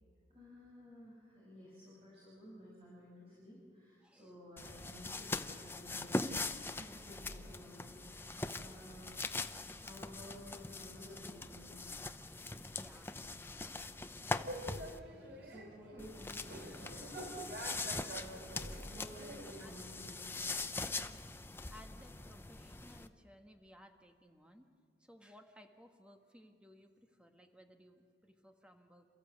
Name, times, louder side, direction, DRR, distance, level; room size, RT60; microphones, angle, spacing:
voice 1, 0.3-11.8 14.5-16.5 16.8-17.5 18.2-20.6, equal, 35° right, -6 dB, 6.1 m, -55 dB
voice 2, 4.0-4.3 12.7-13.7 18.9-19.1 19.6-19.8 21.7-24.7 25.0-29.1, equal, 5° right, 4 dB, 1.5 m, -60 dB
sound 1, 4.6-15.0 16.0-23.1, left 3 dB, 15° left, 0.6 m, -42 dB
sound 2, 14.4-19.7, right 1 dB, 75° right, 3.3 m, -48 dB
28.5 x 14.5 x 8.2 m, 2.3 s
head